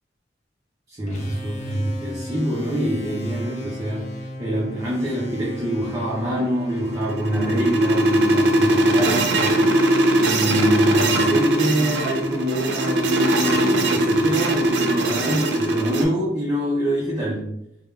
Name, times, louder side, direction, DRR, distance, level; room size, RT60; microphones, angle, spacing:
voice 1, 0.9-4.1 4.4-9.7 10.1-17.5, equal, 20° right, -6 dB, 0.5 m, -25 dB
sound 1, 1.1-15.6, equal, 40° left, 0.5 m, -35 dB
sound 2, 6.6-16.0, right 1 dB, 80° right, 0.4 m, -20 dB
3.3 x 2.1 x 2.3 m, 0.77 s
head